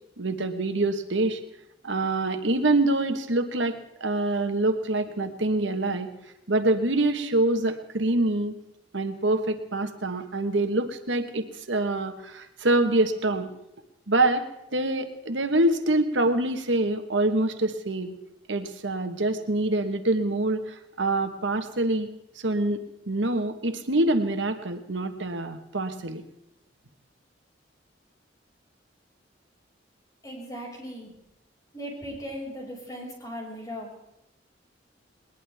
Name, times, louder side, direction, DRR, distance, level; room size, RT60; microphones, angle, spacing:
voice 1, 0.2-1.4 1.8-6.1 6.5-8.5 8.9-13.5 14.1-18.1 18.5-22.1 22.4-22.8 23.1-26.2, right 2 dB, 90° right, 7 dB, 1.3 m, -25 dB
voice 2, 30.2-31.1 31.7-33.9, equal, 20° left, -2 dB, 5.8 m, -38 dB
20.5 x 20.0 x 3.5 m, 0.84 s
head